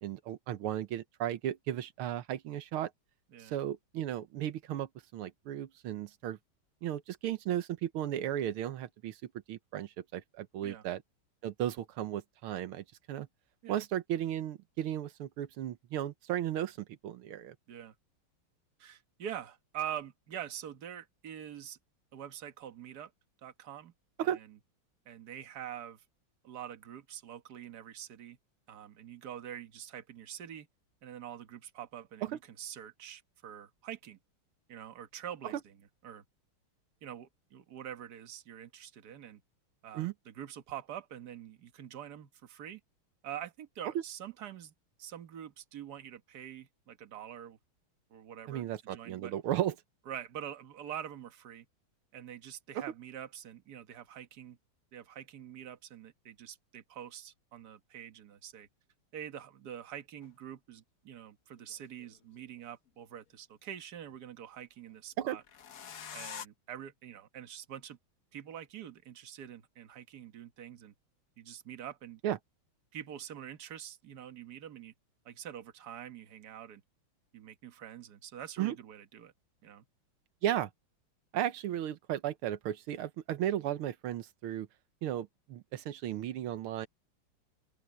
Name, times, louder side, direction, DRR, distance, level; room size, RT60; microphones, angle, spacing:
voice 1, 0.0-2.9 3.4-6.4 6.8-11.0 11.4-13.3 13.7-17.6 24.2-24.4 39.9-40.1 48.5-49.8 52.8-52.9 65.2-65.4 72.2-72.4 78.6-78.7 80.4-80.7 81.3-84.7 85.0-86.9, right 11 dB, 90° right, 1.8 m, -35 dB
voice 2, 18.8-21.8 22.1-23.1 23.4-23.9 24.2-24.6 25.1-26.0 26.4-28.4 28.7-30.7 31.0-34.2 34.7-35.8 36.0-36.2 37.0-39.4 39.8-42.8 43.2-44.7 45.0-47.6 48.1-49.3 50.1-51.7 52.1-54.6 54.9-58.7 59.1-65.4 66.1-68.0 68.3-70.9 71.4-72.2 72.9-74.9 75.3-76.8 77.3-79.3 79.6-79.8, right 10 dB, 50° right, 1.7 m, -45 dB
sound 1, 60.2-60.3 61.6-62.6 65.4-66.5, left 8 dB, 50° left, 1.2 m, -45 dB
open air
omnidirectional pair, 2.3 m